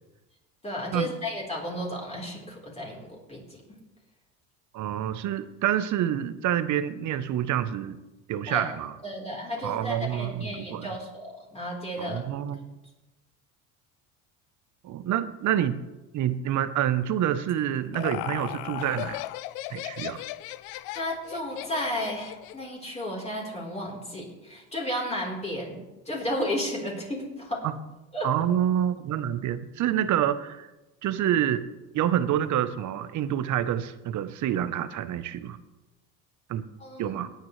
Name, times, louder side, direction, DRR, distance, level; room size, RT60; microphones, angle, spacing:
voice 1, 0.6-3.6 8.5-8.7 9.0-12.2 20.9-25.8 26.1-27.6 28.1-28.3 36.8-37.2, left 1 dB, 15° left, -3 dB, 4.1 m, -33 dB
voice 2, 4.7-8.0 8.3-9.0 9.6-10.9 12.0-12.7 14.8-15.7 16.1-19.2 19.7-20.2 27.6-27.7 28.2-30.7 31.0-31.6 31.9-35.6 36.5-36.6 37.0-37.3, right 10 dB, 50° right, 13 dB, 1.0 m, -27 dB
Laughter, 17.5-22.7, left 16 dB, 70° left, 0.7 m, -36 dB
18.5 x 9.3 x 3.3 m, 1.0 s
supercardioid pair, 90°, 37 cm